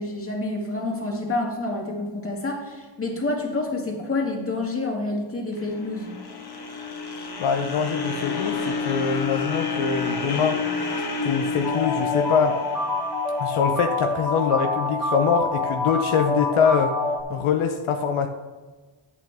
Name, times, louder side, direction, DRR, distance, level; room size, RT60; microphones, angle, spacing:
voice 1, 0.0-6.1, left 2 dB, 25° left, -1 dB, 2.2 m, -28 dB
sound 1, 5.6-13.8, left 4 dB, 50° left, 1.2 m, -29 dB
voice 2, 7.4-10.6 11.2-12.6 13.4-17.0 17.3-18.3, left 6 dB, 85° left, 5 dB, 0.8 m, -23 dB
sound 2, 11.6-17.2, left 2 dB, ahead, 1.4 m, -26 dB
10.5 x 8.4 x 3.5 m, 1.3 s
wide cardioid pair, 130°, 49 cm